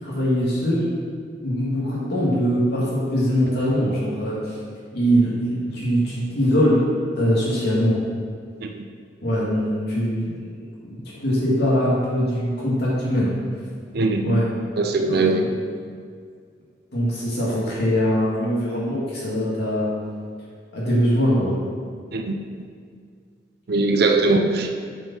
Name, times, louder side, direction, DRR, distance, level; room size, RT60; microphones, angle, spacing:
voice 1, 0.0-0.8 1.4-4.5 4.9-6.8 7.2-8.0 9.2-10.3 10.8-13.3 14.2-14.5 15.0-15.4 16.9-19.9 20.7-21.5, equal, 65° left, -7 dB, 2.1 m, -22 dB
voice 2, 13.9-14.4 14.8-15.4 22.1-22.4 23.7-24.8, right 3 dB, 60° right, 4 dB, 0.6 m, -20 dB
7.5 x 5.2 x 5.5 m, 2.1 s
head